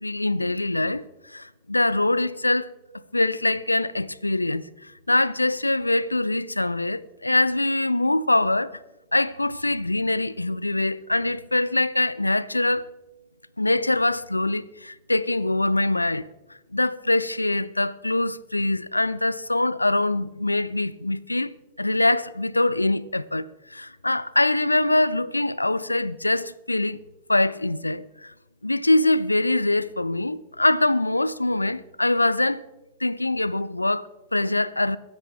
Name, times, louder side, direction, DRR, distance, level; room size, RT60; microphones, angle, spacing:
voice 1, 0.0-2.7 3.1-8.8 9.1-12.9 13.6-16.3 16.7-27.0 27.3-28.3 28.6-32.6 33.0-35.0, left 2 dB, 85° left, 0.4 m, -23 dB
23.0 x 10.5 x 3.5 m
figure-of-eight pair, 90°, 0 cm